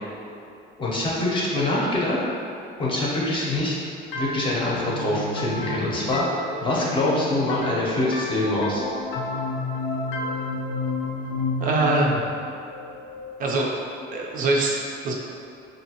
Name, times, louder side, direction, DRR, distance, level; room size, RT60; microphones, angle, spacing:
voice 1, 0.8-2.2 2.8-3.7 4.1-8.8, left 1 dB, 25° left, -5 dB, 0.6 m, -24 dB
sound 1, 4.1-13.6, left 2 dB, 90° left, 0.5 m, -31 dB
voice 2, 11.6-12.3 13.4-13.7 14.1-14.8 15.0-15.1, right 2 dB, 45° right, -2 dB, 0.4 m, -22 dB
5.3 x 2.6 x 2.8 m, 2.6 s
cardioid pair, 175°, 20 cm